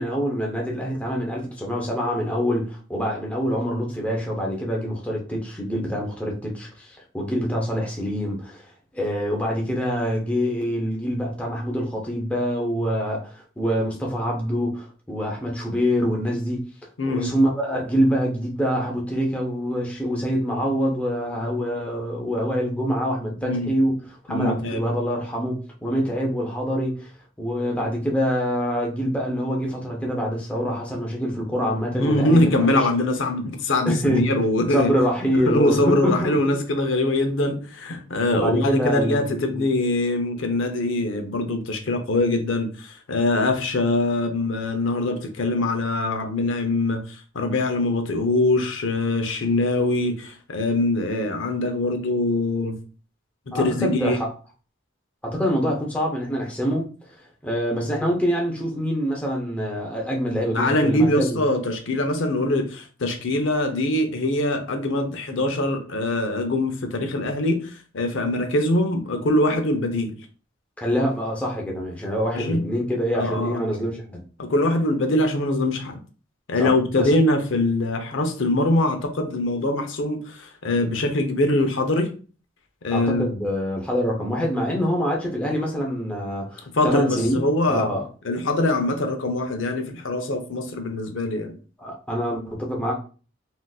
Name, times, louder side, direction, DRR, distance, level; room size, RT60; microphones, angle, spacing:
voice 1, 0.0-8.6 8.9-16.6 17.1-23.9 24.3-27.1 27.4-32.4 33.9-34.3 34.7-36.3 38.3-39.7 53.5-54.3 55.2-56.9 57.4-61.4 70.8-74.2 76.6-77.1 82.9-88.0 91.8-92.9, equal, 5° left, 0.7 m, -25 dB
voice 2, 17.0-17.4 23.4-23.7 24.3-24.8 32.0-34.9 35.5-47.1 47.3-52.8 53.5-54.2 60.5-70.1 72.3-72.7 73.1-73.6 74.4-76.0 76.5-82.1 82.8-83.3 86.7-87.9 88.2-91.5, left 2 dB, 80° left, 0.6 m, -23 dB
3.7 x 2.5 x 2.3 m
head